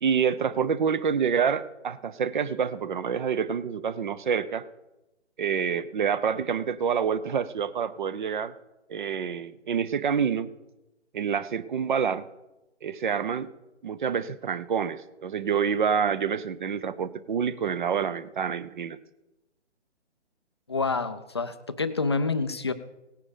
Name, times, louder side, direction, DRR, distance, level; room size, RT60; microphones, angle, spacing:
voice 1, 0.0-4.7 5.4-8.5 8.9-10.5 11.1-12.2 12.8-13.5 13.8-19.0, right 7 dB, 45° right, 16 dB, 0.8 m, -27 dB
voice 2, 20.7-22.7, left 4 dB, 25° left, 11 dB, 0.4 m, -28 dB
17.5 x 9.5 x 5.1 m, 1.0 s
hypercardioid pair, 155°, 36 cm